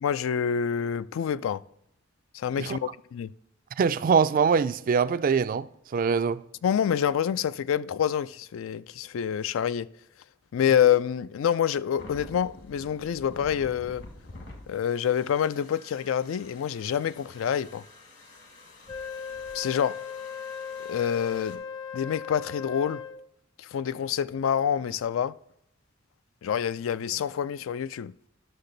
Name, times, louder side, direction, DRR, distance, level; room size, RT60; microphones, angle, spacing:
voice 1, 0.0-1.6 2.3-3.3 6.6-9.9 10.5-14.0 14.7-17.8 19.5-20.0 20.8-21.6 21.9-23.0 23.6-25.3 26.4-28.1, left 8 dB, 80° left, 0.3 m, -27 dB
voice 2, 3.8-5.7 5.9-6.4, right 6 dB, 45° right, 0.3 m, -23 dB
sound 1, 12.0-21.5, left 2 dB, 60° left, 1.4 m, -48 dB
Wind instrument woodwind instrument, 18.9-23.3, left 7 dB, 25° left, 0.5 m, -38 dB
11.5 x 6.5 x 3.9 m
head